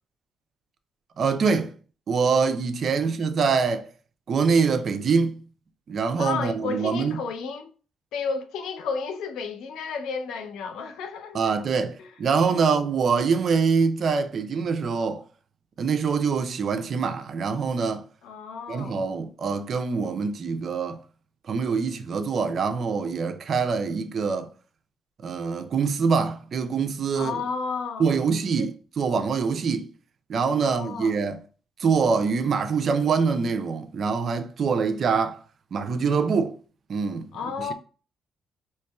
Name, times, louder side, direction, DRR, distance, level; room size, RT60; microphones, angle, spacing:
voice 1, 1.2-1.7 2.1-3.9 4.3-5.4 5.9-7.2 11.3-15.2 15.8-18.0 18.7-21.0 21.5-24.5 25.2-27.4 28.0-29.9 30.3-31.4 31.8-35.4 35.7-36.6 36.9-37.3, right 5 dB, 55° right, 0.5 m, -24 dB
voice 2, 6.2-7.7 8.1-11.6 12.0-12.1 12.5-12.6 18.2-19.0 27.1-28.1 28.6-28.7 30.6-31.2 37.3-37.7, left 5 dB, 85° left, 0.5 m, -32 dB
4.4 x 3.0 x 2.3 m
cardioid pair, 90°, 0 cm